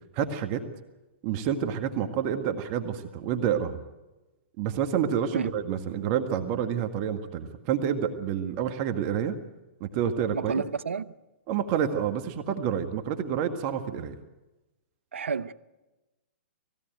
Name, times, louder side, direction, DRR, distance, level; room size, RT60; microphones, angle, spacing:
voice 1, 0.1-0.6 1.2-3.8 4.6-9.4 9.8-10.6 11.5-14.2, right 8 dB, 40° right, 1.6 m, -28 dB
voice 2, 10.3-11.1 15.1-15.5, right 5 dB, 80° right, 0.8 m, -30 dB
20.0 x 16.5 x 9.2 m
hypercardioid pair, 125°, 7 cm